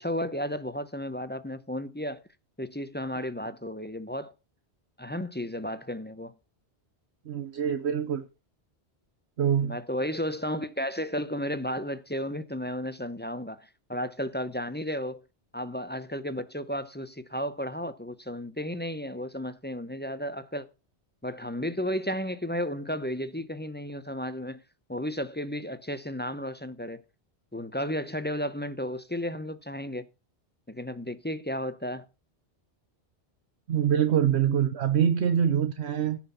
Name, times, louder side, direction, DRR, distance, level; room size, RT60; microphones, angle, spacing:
voice 1, 0.0-2.2 2.6-4.3 5.0-6.3 9.6-15.2 15.5-20.7 21.2-24.6 24.9-27.0 27.5-30.0 30.7-32.1, equal, 10° left, 0.7 m, -33 dB
voice 2, 7.3-8.2 9.4-9.8 33.7-36.2, right 9 dB, 75° right, 1.1 m, -25 dB
16.0 x 6.0 x 5.7 m
omnidirectional pair, 1.1 m